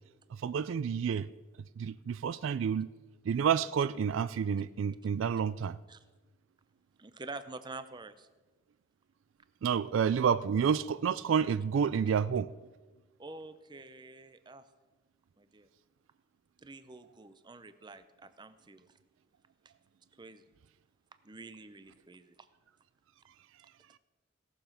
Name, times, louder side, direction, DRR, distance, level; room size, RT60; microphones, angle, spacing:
voice 1, 0.4-1.3 1.8-2.9 3.3-5.8 9.6-12.5, right 7 dB, 65° right, 0.3 m, -29 dB
voice 2, 7.0-8.3 13.2-14.7 15.4-15.7 16.6-19.0 20.2-20.5 21.2-22.5, right 3 dB, 20° right, 0.6 m, -47 dB
17.0 x 7.1 x 5.7 m
head